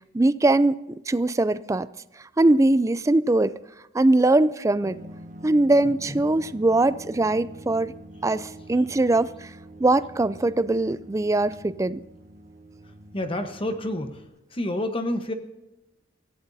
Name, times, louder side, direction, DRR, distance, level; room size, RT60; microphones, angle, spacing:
voice 1, 0.1-0.8 1.1-1.9 2.4-3.5 3.9-5.0 5.4-7.9 8.2-9.5 9.8-12.0, right 2 dB, 15° right, 16 dB, 0.4 m, -21 dB
sound 1, 4.8-14.3, right 1 dB, 40° right, 1.1 m, -45 dB
voice 2, 13.1-14.3 14.5-15.3, left 1 dB, 30° left, 6 dB, 1.1 m, -29 dB
24.5 x 15.5 x 2.7 m, 0.95 s
head